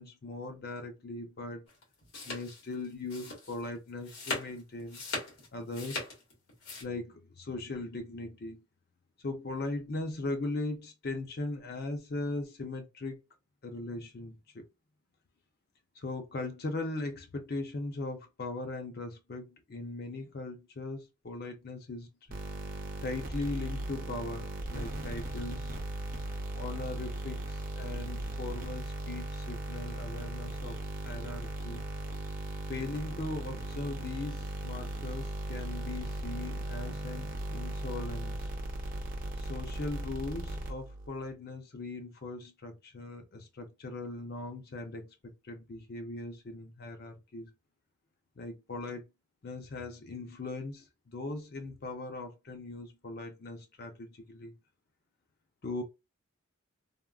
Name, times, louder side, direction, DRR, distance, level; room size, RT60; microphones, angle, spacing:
voice 1, 0.0-1.7 2.3-5.0 5.5-6.0 6.8-8.6 9.2-13.2 13.6-14.7 16.0-22.1 23.0-25.8 26.5-31.8 32.7-38.5 39.4-45.1 45.4-47.5 48.4-49.0 49.4-54.6 55.6-55.8, left 2 dB, 45° left, 0.5 m, -39 dB
sound 1, 1.7-6.8, left 2 dB, 85° left, 1.4 m, -40 dB
sound 2, 22.3-41.1, right 1 dB, 40° right, 0.6 m, -37 dB
3.5 x 2.0 x 2.3 m
head